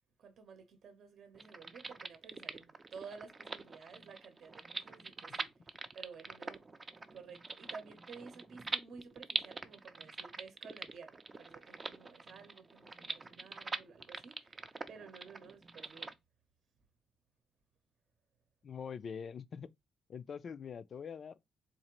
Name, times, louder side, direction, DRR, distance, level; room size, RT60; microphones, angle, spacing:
voice 1, 0.2-6.6 7.1-16.2, right 5 dB, 60° right, 0.8 m, -53 dB
sound 1, 1.3-16.1, right 3 dB, 25° right, 0.4 m, -44 dB
voice 2, 18.6-19.7 20.1-21.4, left 6 dB, 45° left, 0.3 m, -44 dB
4.0 x 2.5 x 2.9 m
cardioid pair, 130°, 0 cm